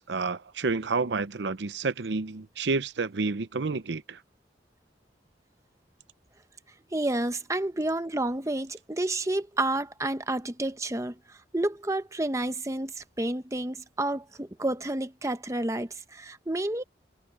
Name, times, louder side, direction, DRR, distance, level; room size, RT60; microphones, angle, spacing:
voice 1, 0.0-4.2, right 4 dB, 90° right, 0.7 m, -29 dB
voice 2, 6.9-16.8, right 1 dB, 15° right, 0.9 m, -30 dB
head